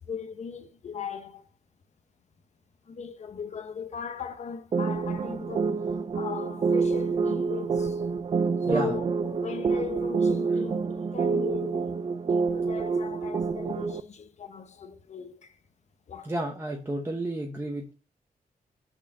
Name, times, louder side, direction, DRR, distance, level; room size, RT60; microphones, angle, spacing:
voice 1, 0.1-1.5 2.9-8.0 8.6-12.0 12.2-15.5 16.1-16.3, left 6 dB, 50° left, 0.9 m, -38 dB
sound 1, 4.7-14.0, right 5 dB, 35° right, 0.4 m, -27 dB
voice 2, 8.7-9.0 16.2-17.9, right 1 dB, 15° right, 0.9 m, -31 dB
6.0 x 4.4 x 5.4 m
wide cardioid pair, 155°, 15 cm